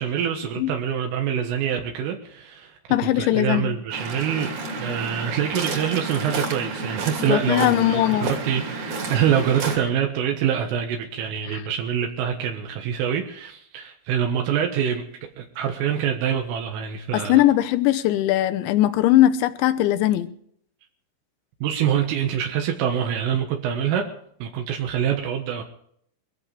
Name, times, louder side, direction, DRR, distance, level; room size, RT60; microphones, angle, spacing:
voice 1, 0.0-4.5 4.8-8.0 8.4-15.0 15.4-17.4 21.6-24.1 24.4-25.6, right 8 dB, 80° right, 2 dB, 3.9 m, -25 dB
voice 2, 2.9-3.8 7.3-8.3 11.5-11.6 17.1-20.3, left 14 dB, 75° left, 11 dB, 2.9 m, -20 dB
Waves surf, 3.9-9.8, right 3 dB, 45° right, 3.3 m, -30 dB
23.0 x 14.5 x 3.3 m, 0.66 s
omnidirectional pair, 5.8 m